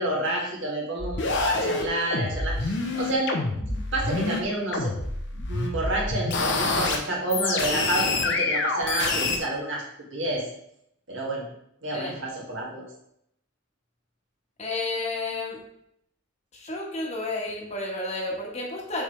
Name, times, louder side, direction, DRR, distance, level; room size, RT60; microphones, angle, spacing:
voice 1, 0.0-4.9 5.3-9.8 10.1-10.4 11.1-11.5 11.8-12.8, right 1 dB, 60° right, -4 dB, 2.0 m, -29 dB
sound 1, 1.0-4.4 4.7-7.0 7.3-9.4, left 3 dB, 55° left, 0.9 m, -27 dB
voice 2, 14.6-15.6 16.5-19.0, left 2 dB, 30° left, -2 dB, 1.4 m, -31 dB
6.9 x 4.6 x 3.3 m, 0.73 s
head